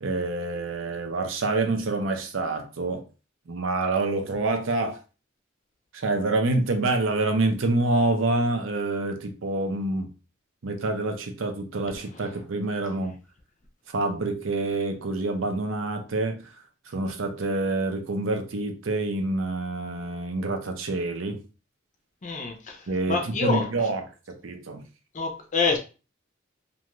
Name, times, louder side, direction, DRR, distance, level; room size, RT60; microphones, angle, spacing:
voice 1, 0.0-3.0 3.5-5.0 5.9-10.1 10.6-13.1 13.9-16.5 16.9-21.4 22.9-24.8, right 2 dB, 80° right, 0.6 m, -27 dB
voice 2, 22.2-23.7 25.1-25.8, left 4 dB, 40° left, 0.5 m, -27 dB
2.5 x 2.3 x 2.9 m
head